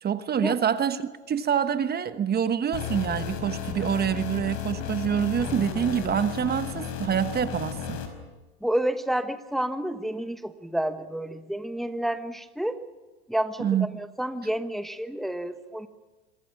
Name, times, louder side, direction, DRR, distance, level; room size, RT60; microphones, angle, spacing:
voice 1, 0.0-8.0 13.6-13.9, right 8 dB, 25° right, 1.2 m, -26 dB
sound 1, 2.7-8.1, left 8 dB, 55° left, 5.1 m, -33 dB
voice 2, 8.6-12.8 13.3-15.9, right 1 dB, ahead, 1.2 m, -29 dB
26.5 x 23.0 x 6.0 m
hypercardioid pair, 100°, 35 cm